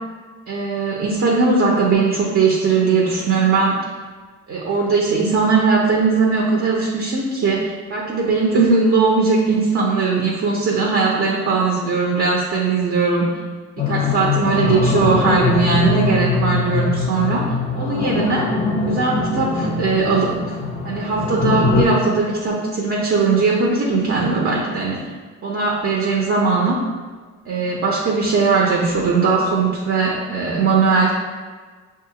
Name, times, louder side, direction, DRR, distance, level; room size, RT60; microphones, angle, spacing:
voice 1, 0.5-3.8 4.5-13.3 13.9-18.5 18.9-20.6 20.8-25.0 25.4-26.8 27.5-31.1, right 4 dB, 45° right, -2 dB, 0.7 m, -19 dB
sound 1, 13.8-21.8, left 3 dB, 20° left, 0.5 m, -22 dB
6.3 x 2.4 x 2.9 m, 1.4 s
cardioid pair, 90°, 30 cm